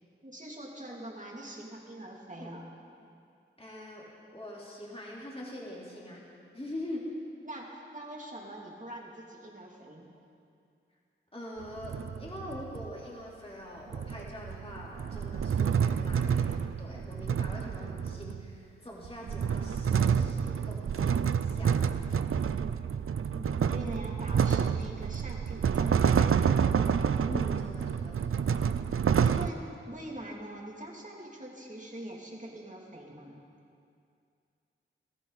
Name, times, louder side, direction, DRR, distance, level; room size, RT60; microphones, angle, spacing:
voice 1, 0.2-2.7 7.4-10.1 23.3-26.6 29.2-33.4, right 1 dB, 35° right, -2 dB, 2.7 m, -43 dB
voice 2, 3.6-4.1 4.3-6.2 6.5-7.1 11.3-21.9 27.3-28.4, left 1 dB, 25° left, -5 dB, 3.5 m, -43 dB
sound 1, 11.6-12.9 13.9-18.5 19.0-29.5, right 7 dB, 90° right, 0.4 m, -28 dB
19.5 x 14.0 x 4.1 m, 2.4 s
wide cardioid pair, 40°, 21 cm